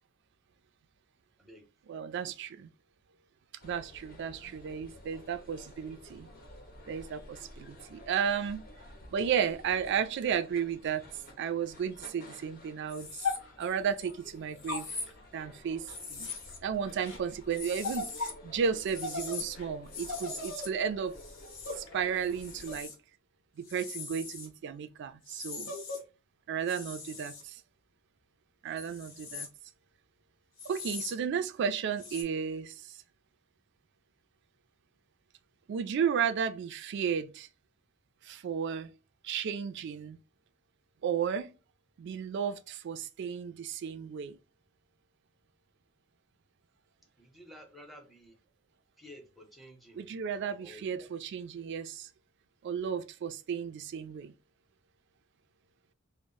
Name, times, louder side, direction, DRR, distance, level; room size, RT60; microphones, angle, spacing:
voice 1, 1.9-2.7 3.6-6.3 6.9-8.6 9.1-11.0 11.4-13.3 13.6-15.0 15.3-16.3 16.6-21.2 21.8-22.9 23.6-25.7 26.5-27.6 28.6-29.5 30.6-33.0 35.7-37.5 38.2-38.9 39.2-40.2 41.0-41.5 42.0-44.4 49.9-52.1 52.6-54.3, right 7 dB, 60° right, 0.3 m, -33 dB
sound 1, 3.6-22.9, left 1 dB, 45° left, 0.6 m, -52 dB
sound 2, 12.9-14.1 14.6-15.5 15.9-18.4 18.6-22.9 23.7-24.5 25.3-26.0 26.7-27.4 28.8-29.5 30.6-31.1 32.0-32.2, left 4 dB, 80° left, 0.7 m, -39 dB
voice 2, 47.2-48.4 49.0-50.0 50.6-51.1, equal, ahead, 0.6 m, -52 dB
2.0 x 2.0 x 3.6 m
head